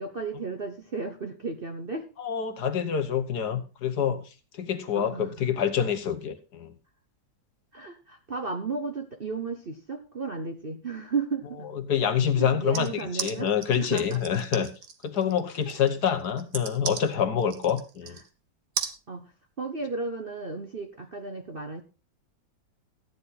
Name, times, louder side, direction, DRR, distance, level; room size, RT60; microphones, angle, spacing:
voice 1, 0.0-2.1 4.9-5.5 7.7-11.7 12.4-14.2 19.1-19.3 19.6-21.8, right 4 dB, 40° right, 6 dB, 0.9 m, -34 dB
voice 2, 2.2-6.7 11.7-12.9 13.2-14.7 15.0-18.2, left 8 dB, 60° left, 8 dB, 1.6 m, -26 dB
sound 1, 12.7-18.3 18.8-19.0, right 7 dB, 60° right, 1.7 m, -35 dB
14.0 x 9.8 x 4.2 m, 0.32 s
omnidirectional pair, 2.1 m